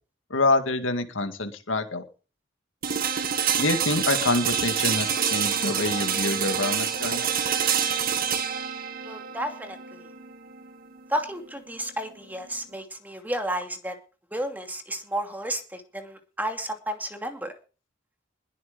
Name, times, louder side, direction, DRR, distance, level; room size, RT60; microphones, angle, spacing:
voice 1, 0.3-2.0 3.6-7.3, left 2 dB, 80° left, 7 dB, 2.1 m, -26 dB
sound 1, 2.8-12.7, right 8 dB, 50° right, 1.9 m, -27 dB
voice 2, 9.0-10.1 11.1-14.0 14.3-17.6, right 1 dB, 10° right, 5 dB, 2.6 m, -32 dB
21.0 x 8.1 x 5.2 m, 0.36 s
head